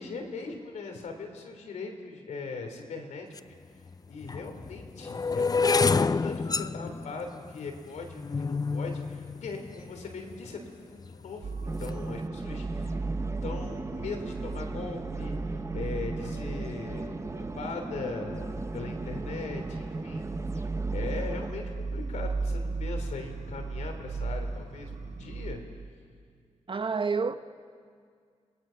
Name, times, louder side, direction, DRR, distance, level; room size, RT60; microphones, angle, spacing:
voice 1, 0.0-3.6 4.1-13.0 13.4-20.3 20.6-24.9 25.2-25.6, left 4 dB, 85° left, 3.4 m, -40 dB
sound 1, 3.4-3.5 4.2-10.4 11.0-11.4 11.7-12.0, left 4 dB, 30° left, 0.5 m, -28 dB
sound 2, 11.4-25.6, right 3 dB, 75° right, 1.5 m, -36 dB
sound 3, 11.6-21.5, right 2 dB, 25° right, 1.1 m, -38 dB
voice 2, 26.7-27.3, right 5 dB, 45° right, 1.1 m, -28 dB
28.5 x 19.0 x 5.9 m
cardioid pair, 60°, 12 cm